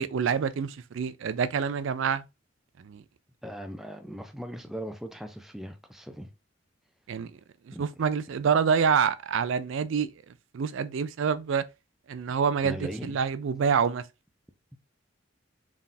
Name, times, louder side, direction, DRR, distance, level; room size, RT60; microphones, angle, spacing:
voice 1, 0.0-2.2 2.8-3.0 7.1-7.3 7.8-10.1 10.5-11.6 12.1-14.0, right 6 dB, 70° right, 0.4 m, -26 dB
voice 2, 3.4-6.3 7.7-8.0 12.6-13.2, equal, ahead, 0.4 m, -39 dB
3.9 x 3.6 x 2.6 m
head